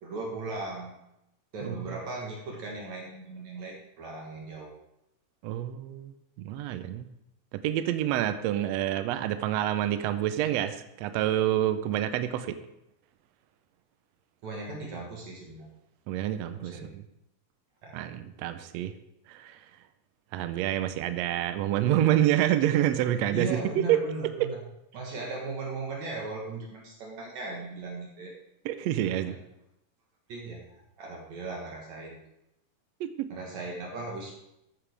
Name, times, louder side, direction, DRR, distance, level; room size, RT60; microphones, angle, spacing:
voice 1, 0.0-0.9 1.5-4.8 14.4-15.7 16.6-16.9 17.8-18.0 23.3-24.6 24.9-28.3 29.0-29.3 30.3-32.2 33.3-34.3, right 3 dB, 60° right, -1 dB, 2.6 m, -37 dB
voice 2, 1.6-2.0 5.4-7.0 7.5-12.6 16.1-17.0 17.9-18.9 19.3-19.6 20.3-24.0 28.6-29.4 33.0-33.3, right 12 dB, 85° right, 10 dB, 1.5 m, -28 dB
14.0 x 8.9 x 3.5 m, 0.84 s
omnidirectional pair, 3.8 m